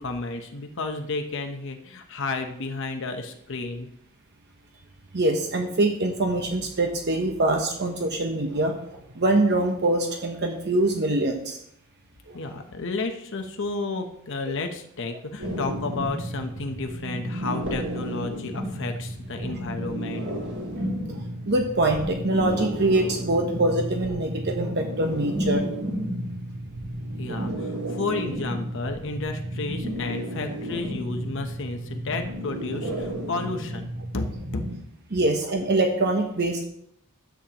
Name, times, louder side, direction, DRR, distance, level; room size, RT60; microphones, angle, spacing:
voice 1, 0.0-3.9 12.3-20.2 27.2-34.3, left 3 dB, 60° left, 5 dB, 0.9 m, -32 dB
voice 2, 5.1-11.6 12.3-12.4 14.5-14.6 19.4-19.5 21.1-25.6 27.3-27.5 27.8-28.0 35.1-36.6, right 2 dB, 50° right, 3 dB, 1.0 m, -24 dB
sound 1, 15.4-34.8, equal, 90° right, 4.4 m, -32 dB
12.5 x 8.4 x 3.0 m, 0.71 s
head